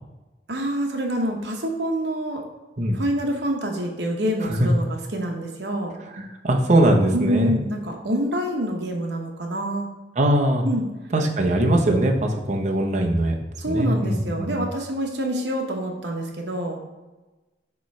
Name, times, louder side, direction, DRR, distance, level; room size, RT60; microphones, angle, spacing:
voice 1, 0.5-2.4 2.9-5.9 7.1-9.9 10.6-10.9 13.6-16.8, right 1 dB, 65° right, 2 dB, 1.0 m, -26 dB
voice 2, 6.4-7.6 10.2-10.7 11.1-13.3 13.7-14.6, right 1 dB, 40° right, 1 dB, 0.8 m, -21 dB
6.8 x 3.2 x 4.7 m, 1.1 s
head